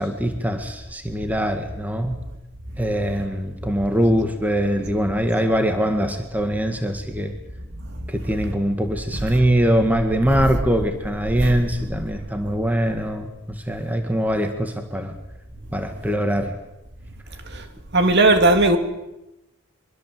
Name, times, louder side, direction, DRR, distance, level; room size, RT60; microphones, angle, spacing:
voice 1, 0.0-2.2 2.8-7.3 8.1-13.3 13.7-15.2 15.7-16.6, equal, 5° right, 1.9 m, -22 dB
voice 2, 17.9-18.8, right 2 dB, 50° right, 2.6 m, -16 dB
24.5 x 23.5 x 7.7 m
head